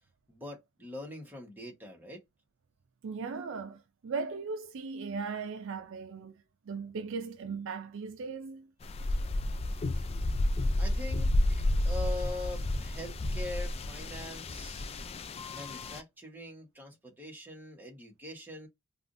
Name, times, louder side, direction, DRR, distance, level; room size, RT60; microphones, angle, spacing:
voice 1, 0.3-2.2 10.8-14.9 15.5-18.7, left 1 dB, 10° right, 1.2 m, -43 dB
voice 2, 3.0-6.4 6.7-8.7, right 4 dB, 65° right, 0.4 m, -38 dB
sound 1, 8.8-16.0, left 1 dB, 30° left, 0.3 m, -31 dB
3.5 x 2.4 x 2.6 m
head